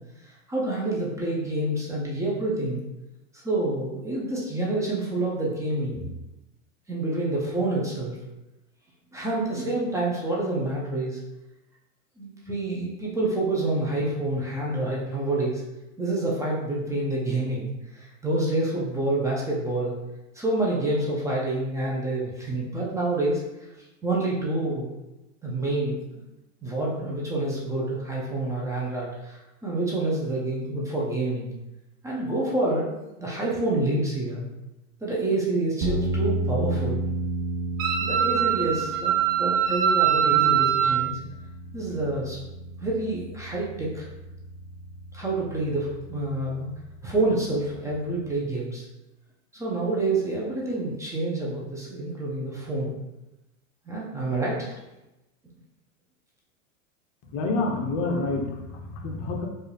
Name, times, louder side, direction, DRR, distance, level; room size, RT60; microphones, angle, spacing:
voice 1, 0.2-2.8 3.3-6.0 6.9-8.2 9.1-11.2 12.2-15.6 16.0-19.9 20.3-23.4 24.0-24.9 25.4-26.2 26.6-31.5 32.0-34.4 35.0-37.0 38.0-41.2 41.7-42.4 42.8-44.1 45.1-46.7 47.0-48.9 49.5-52.9 53.9-54.8, right 2 dB, 10° right, -5 dB, 0.5 m, -28 dB
sound 1, 35.8-48.3, right 1 dB, 35° right, 0.8 m, -33 dB
Wind instrument woodwind instrument, 37.8-41.0, right 9 dB, 70° right, 1.0 m, -22 dB
voice 2, 57.3-59.5, left 3 dB, 45° left, 2 dB, 0.8 m, -28 dB
4.7 x 2.5 x 3.3 m, 0.98 s
supercardioid pair, 135°, 40 cm